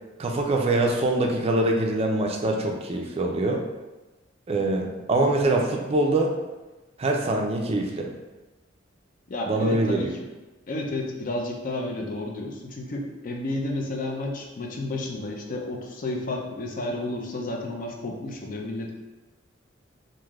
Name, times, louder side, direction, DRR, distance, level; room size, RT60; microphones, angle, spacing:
voice 1, 0.2-3.6 4.5-6.3 7.0-8.1 9.5-10.1, right 2 dB, 30° right, 1 dB, 0.4 m, -24 dB
voice 2, 9.3-10.3 10.7-18.9, left 2 dB, 45° left, 1 dB, 0.4 m, -31 dB
3.3 x 2.5 x 2.4 m, 1.1 s
head